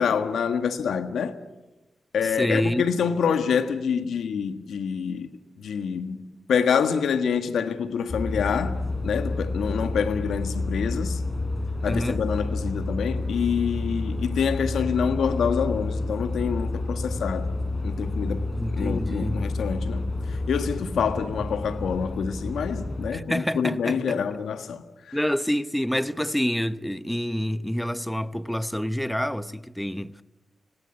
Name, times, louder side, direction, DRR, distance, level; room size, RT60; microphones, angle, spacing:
voice 1, 0.0-1.3 2.1-5.3 5.6-6.2 6.5-11.2 11.8-17.5 17.8-25.2, left 6 dB, 90° left, 1.5 m, -26 dB
voice 2, 2.2-2.8 11.8-12.2 18.5-19.5 23.1-24.2 25.1-30.2, equal, 5° left, 1.0 m, -27 dB
sound 1, 8.1-23.1, left 2 dB, 45° left, 5.8 m, -29 dB
25.0 x 18.5 x 9.7 m
cardioid pair, 55°, 0 cm